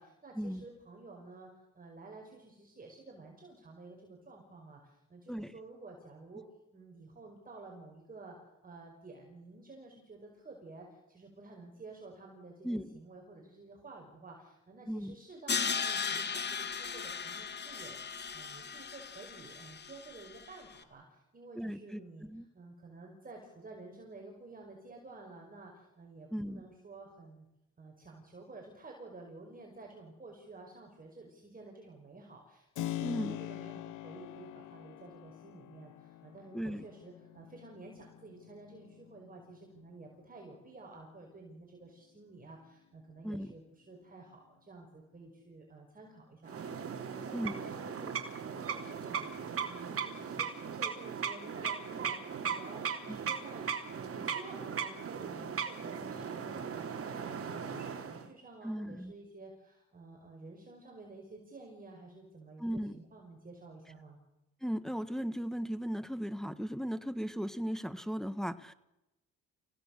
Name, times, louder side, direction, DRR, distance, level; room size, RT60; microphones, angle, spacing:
voice 1, 0.0-1.5 1.7-6.4 6.7-8.4 8.6-27.5 27.8-48.1 48.4-49.3 49.6-64.2, right 3 dB, 30° right, 1 dB, 5.7 m, -52 dB
voice 2, 12.6-13.0 14.9-15.1 21.6-22.4 26.3-26.6 33.0-33.4 36.5-36.9 43.2-43.5 47.3-47.6 53.1-53.2 58.6-59.1 62.6-63.0 64.6-68.7, equal, ahead, 12 dB, 1.4 m, -37 dB
Crash cymbal, 15.5-20.5, left 6 dB, 35° left, 2.7 m, -37 dB
Keyboard (musical), 32.7-41.3, left 15 dB, 90° left, 1.2 m, -45 dB
sound 1, 46.4-58.3, right 7 dB, 50° right, 3.5 m, -38 dB
29.5 x 17.0 x 6.7 m, 0.94 s
cardioid pair, 90°, 30 cm